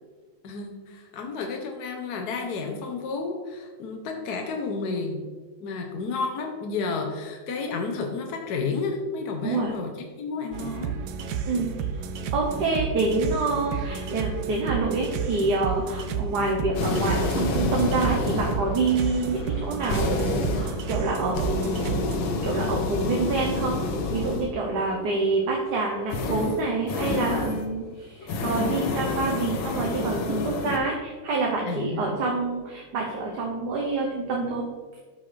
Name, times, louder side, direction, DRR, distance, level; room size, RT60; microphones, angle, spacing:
voice 1, 0.4-5.2 5.6-9.9 10.2-10.9 12.5-12.7 31.7-32.2, left 4 dB, 60° left, 2 dB, 1.3 m, -31 dB
sound 1, 10.5-22.2, right 6 dB, 80° right, 1.4 m, -31 dB
voice 2, 12.3-22.1 22.4-23.8 24.1-34.6, right 3 dB, 60° right, -1 dB, 1.5 m, -27 dB
sound 2, 16.7-24.7 26.1-27.7 28.2-30.8, left 3 dB, 85° left, 1.7 m, -29 dB
13.0 x 5.7 x 3.3 m, 1.4 s
omnidirectional pair, 2.1 m